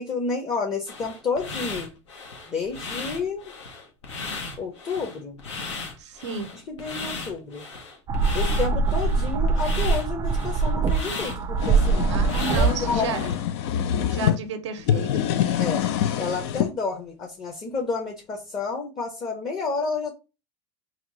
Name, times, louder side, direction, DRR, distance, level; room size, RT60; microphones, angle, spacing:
voice 1, 0.0-1.9 2.5-3.5 4.6-5.4 6.7-7.7 8.3-13.4 15.6-15.8 16.2-20.1, left 4 dB, 30° left, 0.8 m, -30 dB
sound 1, 0.9-13.4, left 4 dB, 85° left, 0.9 m, -36 dB
voice 2, 6.0-6.5 12.1-13.3 14.0-15.3, right 5 dB, 80° right, 0.6 m, -32 dB
sound 2, 8.1-13.1, right 4 dB, 25° right, 0.4 m, -23 dB
sound 3, 11.3-14.4 14.8-16.7, left 10 dB, 70° left, 0.4 m, -25 dB
2.9 x 2.3 x 3.9 m
hypercardioid pair, 100°, 15 cm